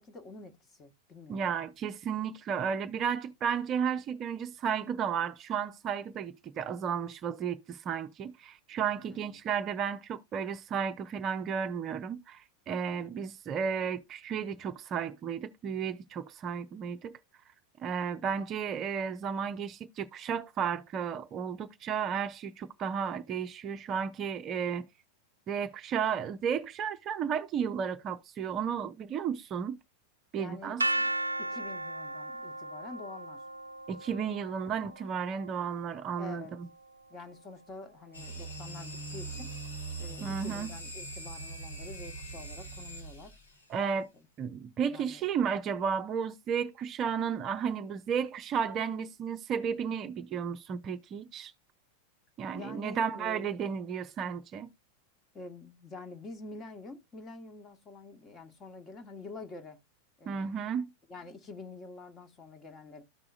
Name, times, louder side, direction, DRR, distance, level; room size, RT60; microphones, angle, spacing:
voice 1, 0.0-1.5 9.1-9.3 12.9-13.2 18.1-18.4 30.4-31.1 31.4-33.4 36.2-36.5 37.1-39.5 40.0-43.3 44.9-45.5 52.5-53.5 55.3-59.8 60.2-60.6 61.1-63.0, left 3 dB, 25° left, 1.2 m, -47 dB
voice 2, 1.3-17.1 17.8-24.8 25.5-29.8 30.3-30.8 33.9-36.7 40.2-40.7 43.7-44.1 44.4-51.5 52.4-54.7 60.3-60.9, right 7 dB, 30° right, 0.6 m, -33 dB
sound 1, 30.8-36.7, right 2 dB, 80° right, 0.5 m, -36 dB
sound 2, 38.1-43.6, right 3 dB, 80° left, 2.2 m, -41 dB
13.5 x 4.8 x 2.5 m
figure-of-eight pair, 90°, 0 cm